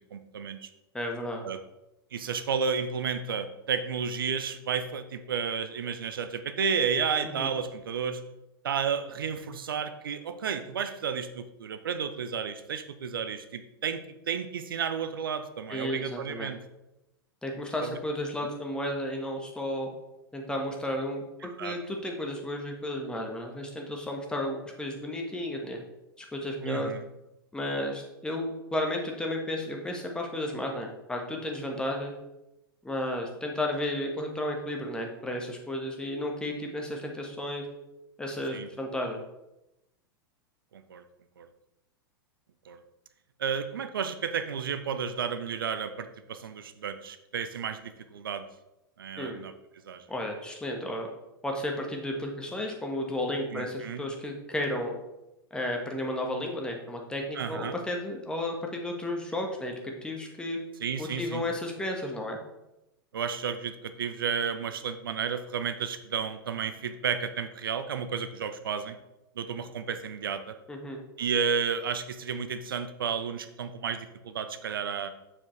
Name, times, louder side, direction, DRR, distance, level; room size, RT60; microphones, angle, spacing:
voice 1, 0.1-0.7 1.4-1.6 2.1-8.2 8.6-16.6 17.8-17.9 21.6-21.8 26.6-27.0 38.5-38.7 40.7-41.0 41.4-41.5 42.7-42.8 43.4-48.4 49.0-49.5 49.9-50.1 53.5-54.0 57.3-57.7 60.8-61.4 63.1-69.0 69.4-70.5 71.2-75.1, right 6 dB, 65° right, 10 dB, 0.6 m, -32 dB
voice 2, 0.9-1.4 7.2-7.5 15.7-16.5 17.4-19.9 20.3-21.2 21.6-25.8 26.2-26.9 27.5-32.1 32.8-37.7 38.2-39.2 49.2-49.4 50.1-51.1 51.4-54.9 55.5-60.6 61.0-62.4 70.7-71.0, left 1 dB, 5° left, 1 dB, 1.5 m, -33 dB
7.1 x 6.9 x 3.3 m, 0.91 s
figure-of-eight pair, 95°, 12 cm